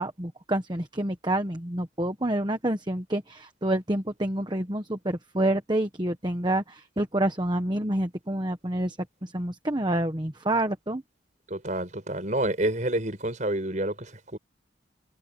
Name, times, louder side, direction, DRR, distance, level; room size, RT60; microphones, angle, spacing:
voice 1, 0.0-11.0, right 1 dB, 25° right, 1.3 m, -28 dB
voice 2, 11.5-14.4, right 1 dB, 40° right, 5.5 m, -28 dB
head